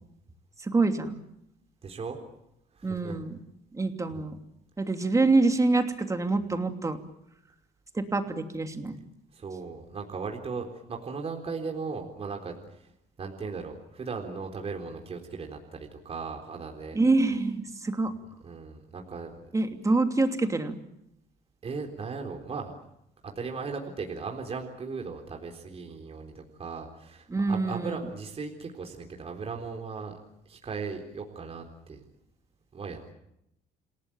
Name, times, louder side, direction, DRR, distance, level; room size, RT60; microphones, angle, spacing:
voice 1, 0.6-1.1 2.8-3.4 3.7-4.4 4.8-7.0 7.9-9.0 16.9-18.1 19.5-20.7 27.3-28.0, right 3 dB, 20° right, 6 dB, 2.9 m, -26 dB
voice 2, 1.8-2.2 2.7-3.2 9.3-12.9 13.2-17.0 18.4-19.3 21.6-22.7 23.2-30.2 30.5-32.0 32.7-33.1, right 4 dB, 35° right, 2 dB, 3.9 m, -37 dB
28.5 x 18.0 x 9.1 m, 0.79 s
cardioid pair, 110°, 17 cm